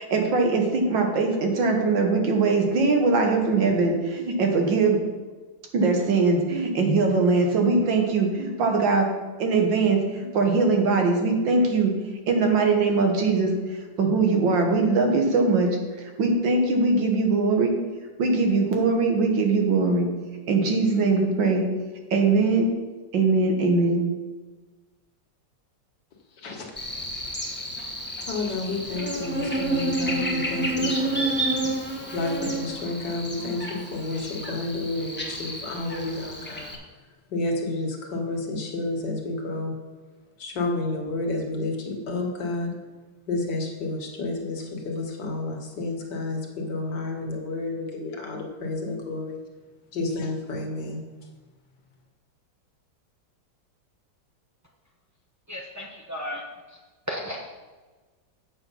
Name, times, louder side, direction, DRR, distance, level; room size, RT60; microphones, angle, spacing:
voice 1, 0.0-5.0 5.7-9.1 9.4-12.0 12.3-13.6 14.0-17.7 18.2-20.1 20.5-21.7 22.1-22.7 23.1-24.1, right 3 dB, 75° right, 2 dB, 2.0 m, -21 dB
Buzz, 26.8-36.8, right 1 dB, 5° left, 1.1 m, -30 dB
voice 2, 28.3-31.3 32.1-36.7 37.3-39.7 40.4-42.7 43.3-49.4 49.9-51.0, left 2 dB, 65° left, 1 dB, 2.0 m, -30 dB
voice 3, 55.5-56.4 57.1-57.4, equal, 25° right, -3 dB, 0.4 m, -33 dB
8.2 x 6.8 x 5.5 m, 1.3 s
omnidirectional pair, 2.0 m